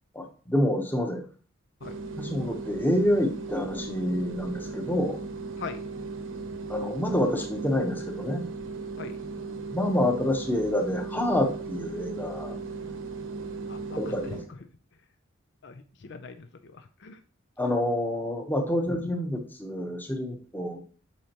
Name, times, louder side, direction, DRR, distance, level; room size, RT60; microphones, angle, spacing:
voice 1, 0.1-1.2 2.2-5.2 6.7-8.4 9.5-12.6 14.0-14.4 17.6-20.8, left 1 dB, 10° left, 3 dB, 1.0 m, -27 dB
sound 1, 1.8-14.5, right 3 dB, 75° right, 1.0 m, -37 dB
voice 2, 15.6-17.2, left 5 dB, 60° left, 8 dB, 0.5 m, -41 dB
8.3 x 5.6 x 3.0 m, 0.41 s
head